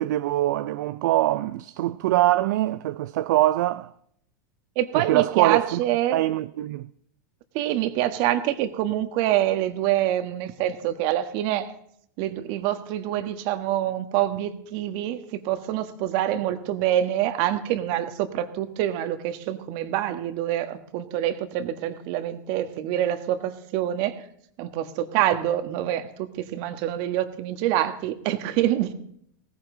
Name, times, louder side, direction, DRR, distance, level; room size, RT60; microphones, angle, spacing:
voice 1, 0.0-3.9 4.9-5.8 6.1-6.9, right 15 dB, 70° right, 0.5 m, -23 dB
voice 2, 4.7-6.2 7.5-11.7 12.2-24.2 24.6-28.9, right 12 dB, 55° right, 1.5 m, -26 dB
17.5 x 15.0 x 3.9 m
hypercardioid pair, 115°, 10 cm